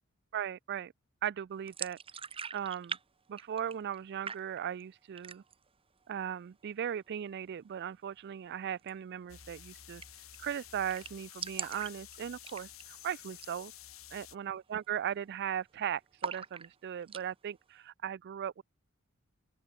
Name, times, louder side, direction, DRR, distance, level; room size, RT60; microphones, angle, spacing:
voice 1, 0.3-0.9 1.2-2.0 2.5-3.0 3.3-5.4 6.1-10.0 10.4-13.7 14.1-18.6, right 9 dB, 50° right, 0.3 m, -38 dB
sound 1, 1.7-3.0 3.3-4.0 4.2-4.8 5.1-5.7 6.0-6.1 6.4-7.1 8.8-8.9 9.2-9.3 9.6-9.7 10.0-10.4 10.6-10.7 10.9-13.0 13.3-13.6 13.9-14.0 14.6-14.8 15.1-15.7 16.2-17.2, right 6 dB, 25° right, 0.8 m, -42 dB
sound 2, 9.3-14.4, left 11 dB, 75° left, 5.5 m, -51 dB
open air
head